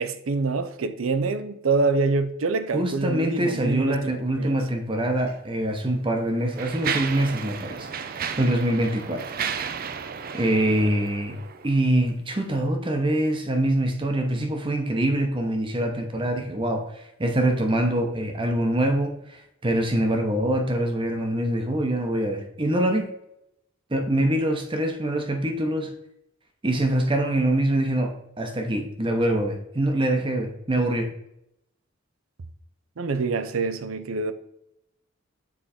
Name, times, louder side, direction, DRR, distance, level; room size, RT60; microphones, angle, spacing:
voice 1, 0.0-4.6 33.0-34.3, right 4 dB, 90° right, 0.6 m, -26 dB
voice 2, 2.7-9.2 10.3-11.4 11.6-16.9 17.2-23.1 23.9-25.9 26.6-31.1, right 1 dB, 25° right, 0.8 m, -24 dB
Mechanisms, 5.2-5.3 6.1-11.8, right 7 dB, 45° right, 0.5 m, -33 dB
7.3 x 3.9 x 4.3 m
head